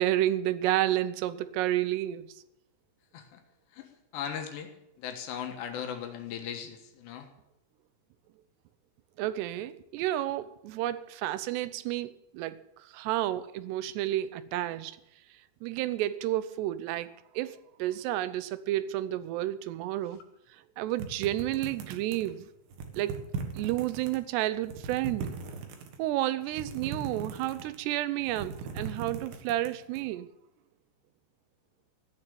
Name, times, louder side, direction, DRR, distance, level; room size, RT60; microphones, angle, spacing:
voice 1, 0.0-2.4 9.2-15.0 15.6-20.2 20.5-22.5 23.0-23.2 23.5-25.3 26.0-30.3, right 14 dB, 80° right, 2.8 m, -31 dB
voice 2, 3.7-4.7 5.0-7.3, left 8 dB, 75° left, 3.5 m, -38 dB
sound 1, 21.0-22.3 22.7-24.2 24.6-26.0 26.5-27.9 28.2-30.0, right 5 dB, 65° right, 2.9 m, -39 dB
16.0 x 7.0 x 8.6 m
omnidirectional pair, 5.1 m